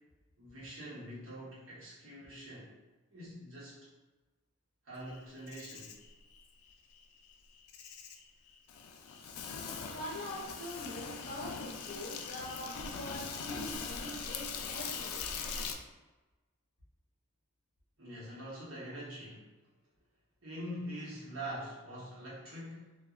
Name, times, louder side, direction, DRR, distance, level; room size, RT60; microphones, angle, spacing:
voice 1, 0.4-2.7 3.1-3.9 4.8-6.0 18.0-19.5 20.4-23.0, equal, 65° right, -8 dB, 1.1 m, -44 dB
Insect, 5.1-15.8, left 5 dB, 80° left, 0.3 m, -42 dB
voice 2, 9.4-15.3, left 1 dB, 35° left, -6 dB, 1.0 m, -44 dB
2.8 x 2.3 x 2.4 m, 1.2 s
head